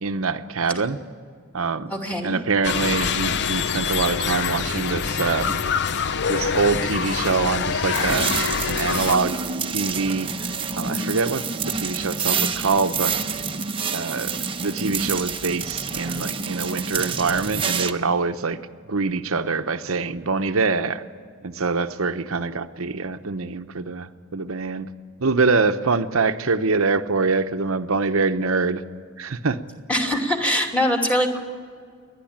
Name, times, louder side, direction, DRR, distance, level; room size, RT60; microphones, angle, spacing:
voice 1, 0.0-1.0 1.5-1.9 2.2-5.6 6.3-8.3 8.7-10.3 10.8-13.2 13.9-18.6 18.9-21.0 21.4-24.9 25.2-28.8 29.2-29.6, right 4 dB, 80° right, 9 dB, 0.9 m, -24 dB
voice 2, 1.9-2.4 29.9-31.4, equal, 5° left, 2 dB, 2.6 m, -22 dB
sound 1, 2.6-9.2, left 6 dB, 60° left, 0.6 m, -25 dB
sound 2, 7.9-17.9, right 5 dB, 25° right, 0.9 m, -28 dB
29.0 x 11.5 x 8.8 m, 2.1 s
head